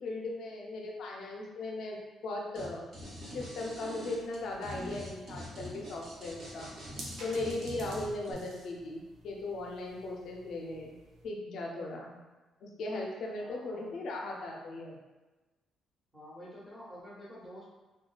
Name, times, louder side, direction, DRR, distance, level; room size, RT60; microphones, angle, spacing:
voice 1, 0.0-2.8 3.3-6.7 7.2-10.9 11.2-12.2 12.6-15.0, left 2 dB, 70° left, -1 dB, 0.5 m, -38 dB
sound 1, 2.5-2.7 2.9-8.3, equal, 50° right, 1.1 m, -44 dB
sound 2, 3.1-11.3, right 2 dB, 75° right, 0.6 m, -53 dB
voice 2, 13.4-14.0 16.1-17.6, equal, 5° right, -8 dB, 1.2 m, -49 dB
2.8 x 2.3 x 2.2 m, 1.2 s
cardioid pair, 90°, 0 cm